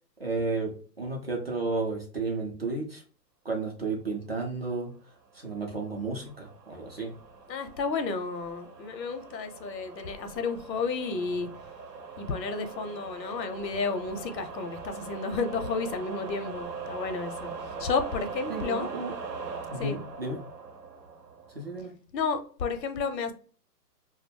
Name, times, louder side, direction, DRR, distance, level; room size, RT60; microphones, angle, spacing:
voice 1, 0.2-3.0 3.4-4.9 5.3-7.1 18.5-19.1 19.7-20.4 21.5-21.9, right 3 dB, 40° right, 0.4 m, -32 dB
sound 1, 5.4-21.8, right 4 dB, 75° right, 0.7 m, -41 dB
voice 2, 7.5-11.5 12.2-18.9 19.8-20.0 22.1-23.3, left 4 dB, 80° left, 0.7 m, -32 dB
2.3 x 2.0 x 3.2 m
hypercardioid pair, 160°, 50 cm